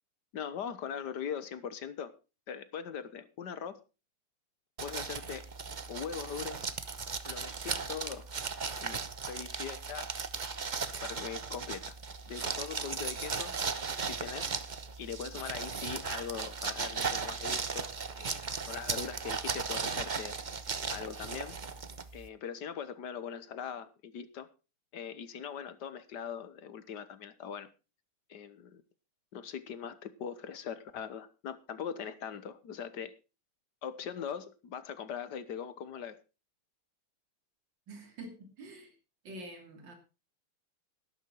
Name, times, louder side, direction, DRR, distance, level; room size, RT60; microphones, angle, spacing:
voice 1, 0.3-2.1 2.5-3.8 4.8-5.5 5.9-6.7 7.2-8.3 8.8-10.1 11.0-12.0 12.3-13.5 14.1-14.5 15.0-17.9 18.2-20.4 20.9-21.5 22.1-24.5 24.9-27.7 28.3-28.8 29.3-33.1 33.8-36.2, left 7 dB, 55° left, 1.5 m, -41 dB
sound 1, 4.8-22.3, right 5 dB, 85° right, 0.4 m, -37 dB
voice 2, 37.9-39.0 39.2-39.9, right 1 dB, 55° right, 3.4 m, -47 dB
12.5 x 12.0 x 4.5 m
omnidirectional pair, 2.4 m